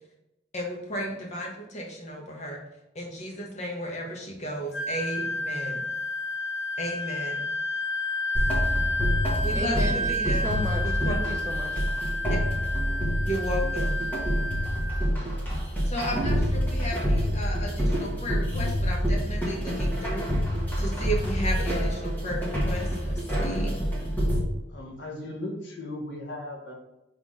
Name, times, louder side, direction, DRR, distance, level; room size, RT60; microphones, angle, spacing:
voice 1, 0.5-2.6 2.9-5.8 6.8-7.4 9.4-10.5 10.8-11.1 12.3-12.4 13.2-14.0 15.8-20.3 20.8-23.8, equal, 40° left, 0 dB, 1.4 m, -34 dB
Wind instrument woodwind instrument, 4.7-15.1, left 2 dB, 60° left, 0.7 m, -31 dB
sound 1, 8.4-24.4, equal, 10° left, 1.5 m, -27 dB
voice 2, 9.5-11.8, equal, 15° right, 1 dB, 0.8 m, -34 dB
voice 3, 24.7-26.7, left 1 dB, 85° left, 0 dB, 1.5 m, -37 dB
5.7 x 3.6 x 4.8 m, 0.94 s
head